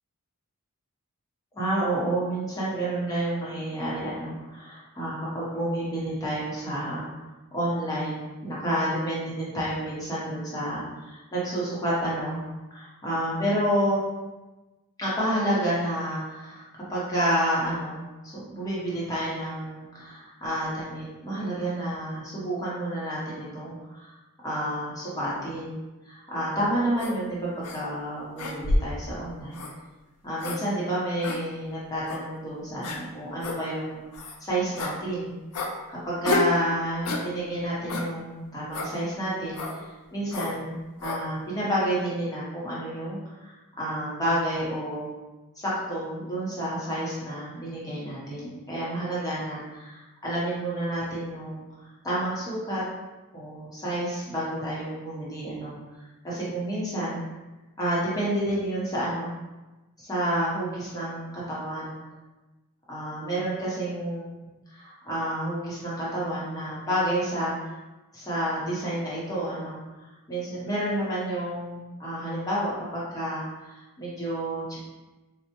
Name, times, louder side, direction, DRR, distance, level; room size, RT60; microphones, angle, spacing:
voice 1, 1.5-7.2 7.5-12.4 12.7-14.0 15.0-16.6 16.9-24.1 24.4-25.8 26.0-29.6 30.2-35.3 36.1-45.1 45.6-51.6 52.0-52.8 53.3-55.8 56.2-57.2 57.8-59.3 60.0-61.9 62.9-64.3 64.7-67.7 68.1-69.8 70.3-74.8, right 1 dB, 15° left, -8 dB, 0.8 m, -30 dB
sound 1, 27.0-27.2 27.6-27.8 28.4-29.0 29.5-29.7 30.4-30.6 31.2-31.4 32.1-32.2 32.8-33.0 33.4-33.6 34.1-34.4 34.8-35.0 35.5-35.7 36.2-36.5 37.0-37.3 37.9-38.1 38.7-38.9 39.5-39.8 40.3-40.6 41.0-41.2, left 3 dB, 90° left, 0.5 m, -29 dB
4.3 x 2.0 x 2.8 m, 1.1 s
head